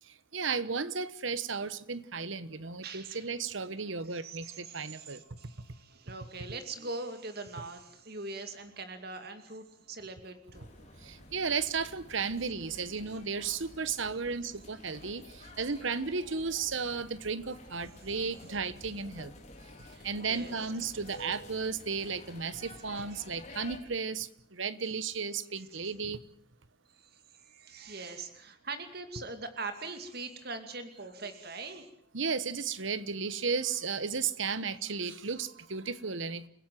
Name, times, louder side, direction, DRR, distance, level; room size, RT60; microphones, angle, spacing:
voice 1, 0.3-5.2 11.0-19.3 20.0-26.2 32.1-36.5, right 5 dB, 70° right, 16 dB, 1.2 m, -34 dB
voice 2, 2.8-3.3 4.1-10.7 19.9-20.7 23.1-23.3 25.7-25.9 26.9-31.9, right 3 dB, 50° right, 8 dB, 2.6 m, -42 dB
sound 1, 10.5-23.8, left 1 dB, 35° left, 4.6 m, -51 dB
30.0 x 16.5 x 7.7 m, 0.65 s
head